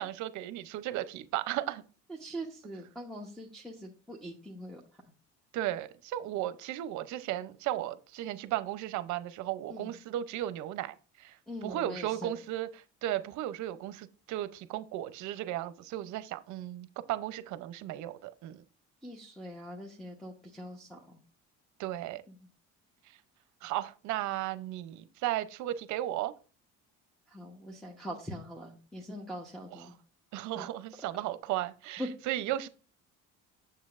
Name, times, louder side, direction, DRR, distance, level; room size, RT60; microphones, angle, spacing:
voice 1, 0.0-1.8 5.5-11.4 11.6-18.6 21.8-22.2 23.6-26.3 29.7-29.9 30.3-32.7, right 13 dB, 75° right, 0.6 m, -35 dB
voice 2, 2.1-4.8 9.7-9.9 11.5-12.4 19.0-21.2 22.3-22.4 27.3-29.9 30.5-30.7 32.0-32.1, equal, ahead, 0.9 m, -42 dB
7.4 x 6.7 x 2.4 m
cardioid pair, 125°, 30 cm